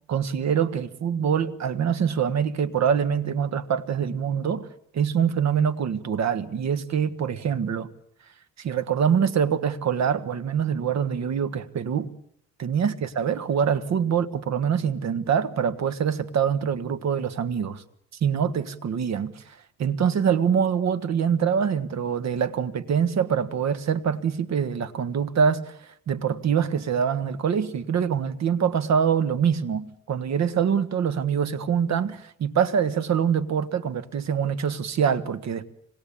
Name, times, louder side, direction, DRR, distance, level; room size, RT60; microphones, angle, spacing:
voice 1, 0.1-4.7 4.9-7.9 8.6-12.1 12.6-17.8 18.2-19.4 19.8-25.7 26.1-35.7, right 7 dB, 60° right, 1.7 m, -24 dB
26.0 x 20.0 x 8.6 m
cardioid pair, 90°, 30 cm